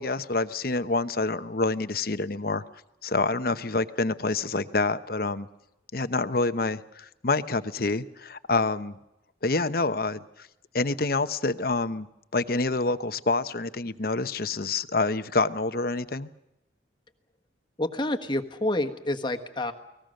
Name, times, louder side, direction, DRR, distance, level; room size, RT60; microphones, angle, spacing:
voice 1, 0.0-2.6 3.0-5.5 5.9-9.0 9.4-10.5 10.7-12.1 12.3-16.3, left 3 dB, 50° left, 12 dB, 0.9 m, -27 dB
voice 2, 17.8-19.7, left 1 dB, 25° left, 5 dB, 1.4 m, -28 dB
29.5 x 19.5 x 6.6 m, 0.91 s
head